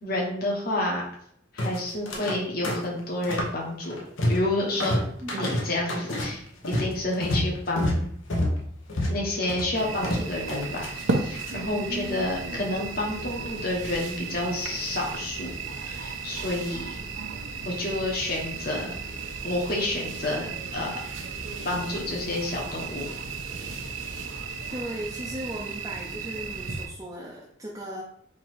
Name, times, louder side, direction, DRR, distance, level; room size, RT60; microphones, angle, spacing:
voice 1, 0.0-1.0 1.5-4.0 4.3-6.4 6.8-8.1 9.1-15.5 15.8-17.0 17.6-18.9 19.4-20.5 20.7-20.9 21.6-23.1, left 1 dB, 50° left, -2 dB, 1.2 m, -29 dB
sound 1, 1.6-2.4 2.6-3.6 3.8-4.5 4.8-11.5, left 1 dB, 80° left, 1.0 m, -29 dB
sound 2, 9.7-26.9, right 4 dB, 85° right, 0.8 m, -34 dB
voice 2, 24.7-28.0, right 1 dB, 15° right, -3 dB, 0.5 m, -37 dB
4.0 x 2.9 x 4.5 m, 0.66 s
head